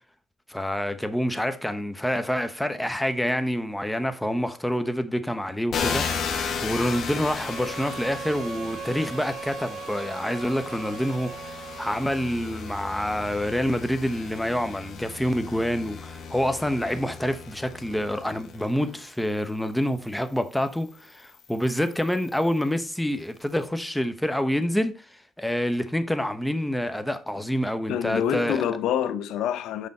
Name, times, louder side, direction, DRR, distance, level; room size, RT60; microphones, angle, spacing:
voice 1, 0.5-6.1 6.6-28.6, equal, 5° left, 0.9 m, -27 dB
sound 1, 5.7-19.1 19.8-22.7, left 5 dB, 60° left, 1.4 m, -35 dB
Bowed string instrument, 7.2-12.3, right 7 dB, 60° right, 0.4 m, -39 dB
voice 2, 27.9-29.9, left 9 dB, 85° left, 0.6 m, -26 dB
6.6 x 5.1 x 4.2 m
cardioid pair, 90°, 0 cm